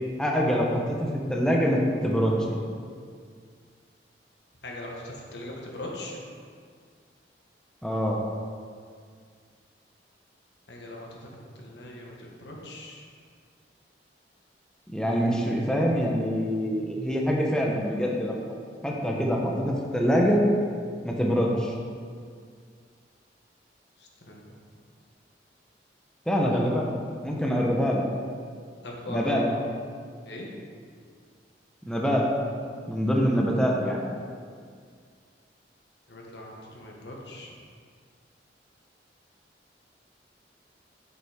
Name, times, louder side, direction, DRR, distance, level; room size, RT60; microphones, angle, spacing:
voice 1, 0.2-2.6 7.8-8.2 14.9-18.4 18.8-20.4 21.0-21.7 26.3-26.9 27.2-28.0 29.1-29.4 31.9-32.3 32.9-34.0, equal, 5° left, -2 dB, 0.9 m, -25 dB
voice 2, 4.6-6.2 10.7-13.0 24.0-24.4 26.5-26.6 28.8-29.6 30.2-30.5 30.9-31.0 36.1-37.5, left 1 dB, 70° left, -1 dB, 1.5 m, -40 dB
7.9 x 5.9 x 5.1 m, 2.1 s
head